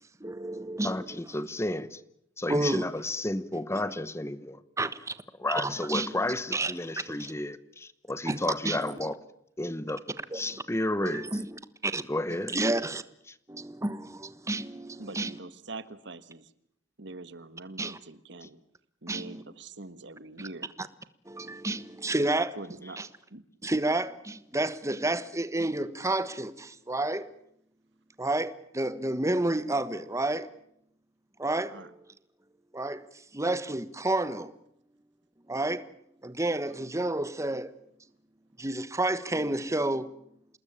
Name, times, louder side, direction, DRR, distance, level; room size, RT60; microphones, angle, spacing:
voice 1, 0.2-1.2 2.5-2.9 3.7-3.8 4.8-5.1 5.4-6.1 6.5-6.7 8.3-8.4 8.6-9.1 10.3-10.4 11.0-12.0 12.5-13.0 13.5-15.3 17.8-18.0 19.1-19.4 21.3-22.6 23.0-23.1 23.6-27.3 28.2-30.5 31.4-31.9 32.7-33.1 33.3-34.5 35.5-35.9 36.2-37.8 38.6-40.1, right 2 dB, 15° right, 1.3 m, -30 dB
voice 2, 0.8-2.0 2.4-4.6 5.4-9.2 9.6-10.0 10.3-11.4 12.1-12.7 15.2-15.3 18.4-18.5, left 1 dB, 15° left, 1.0 m, -32 dB
voice 3, 15.0-16.5 17.0-18.6 19.0-20.7 22.5-23.0 23.3-23.4 31.7-31.9, right 2 dB, 65° right, 1.5 m, -44 dB
27.5 x 20.0 x 8.7 m
head